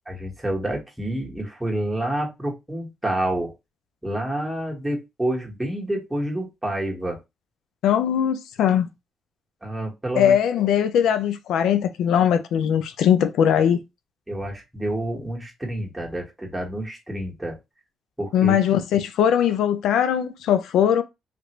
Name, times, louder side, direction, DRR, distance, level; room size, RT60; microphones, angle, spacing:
voice 1, 0.1-3.5 4.0-7.2 9.6-10.4 14.3-17.6 18.2-18.6, right 1 dB, 5° right, 1.2 m, -28 dB
voice 2, 7.8-8.9 10.2-13.8 18.3-21.0, left 9 dB, 80° left, 0.4 m, -20 dB
3.3 x 2.4 x 3.0 m
cardioid pair, 90°, 0 cm